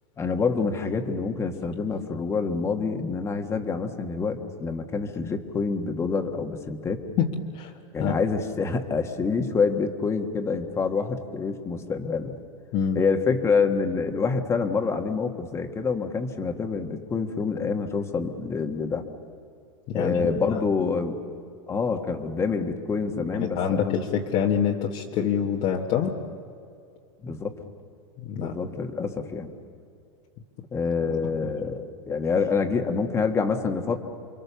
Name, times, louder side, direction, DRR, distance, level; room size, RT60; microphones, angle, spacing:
voice 1, 0.2-7.0 7.9-12.4 12.9-19.0 19.9-21.2 21.7-24.0 27.2-27.6 28.3-29.5 30.7-34.0, left 5 dB, 15° left, 5 dB, 1.7 m, -27 dB
voice 2, 19.9-20.2 20.5-20.6 23.3-26.2 28.2-28.5, left 8 dB, 40° left, -1 dB, 1.6 m, -26 dB
29.0 x 24.0 x 7.1 m, 2.4 s
supercardioid pair, 145°, 16 cm